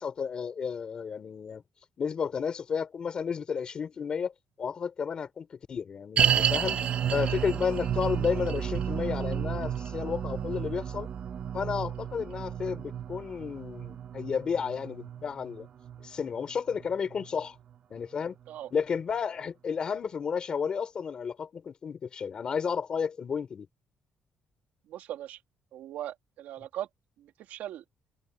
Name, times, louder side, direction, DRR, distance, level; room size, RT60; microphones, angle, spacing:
voice 1, 0.0-1.6 2.0-4.3 4.6-6.8 7.1-11.1 11.5-15.7 16.0-17.5 17.9-18.3 18.7-23.7, left 6 dB, 35° left, 3.2 m, -32 dB
sound 1, 6.2-17.4 17.7-17.8 18.4-18.5, right 9 dB, 40° right, 0.9 m, -31 dB
voice 2, 24.9-25.4 25.7-26.9 27.2-27.8, right 12 dB, 80° right, 2.8 m, -39 dB
cardioid pair, 180°, 3 cm